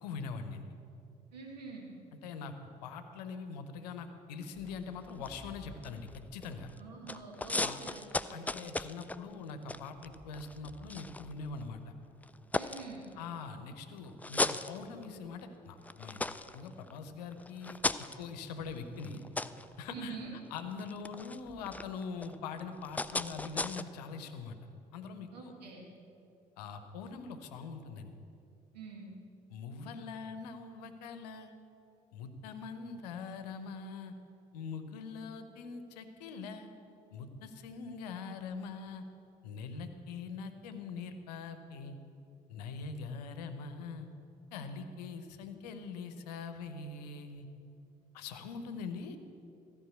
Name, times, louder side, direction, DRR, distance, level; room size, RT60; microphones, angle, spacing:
voice 1, 0.0-0.6 2.2-2.5 2.8-6.7 7.6-7.8 8.3-11.9 13.2-16.3 16.5-17.8 18.2-19.2 19.8-24.6 24.9-25.5 26.6-28.1 29.5-31.5 32.1-34.1 34.5-36.7 37.1-39.0 39.4-42.0 42.5-44.1 44.5-47.5 48.1-49.2, left 5 dB, 75° left, 9 dB, 0.8 m, -43 dB
voice 2, 1.3-1.9 6.8-8.4 12.5-13.0 19.9-20.3 25.3-25.8 28.7-29.1, right 4 dB, 80° right, -1 dB, 1.7 m, -46 dB
sound 1, 4.6-6.8 7.1-11.8 12.2-13.5 14.0-15.4 15.8-23.8, left 2 dB, 5° left, 0.3 m, -38 dB
14.0 x 5.1 x 8.2 m, 2.7 s
figure-of-eight pair, 45°, 21 cm